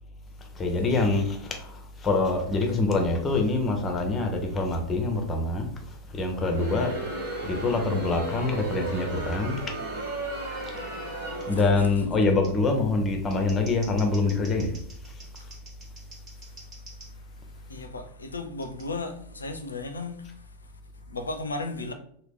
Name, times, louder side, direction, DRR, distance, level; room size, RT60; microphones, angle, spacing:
voice 1, 0.6-5.7 6.1-6.9 7.5-9.6 11.4-14.7, left 3 dB, 20° left, 0.7 m, -25 dB
Crowd, 6.3-12.1, right 2 dB, 65° right, 1.0 m, -35 dB
voice 2, 11.4-11.9 16.4-21.9, left 3 dB, 75° left, 0.4 m, -37 dB
Scissors, 11.4-11.5 12.4-12.5 13.1-17.1 18.6-18.8, right 2 dB, 30° right, 1.4 m, -48 dB
2.9 x 2.2 x 3.5 m
figure-of-eight pair, 90°, 0 cm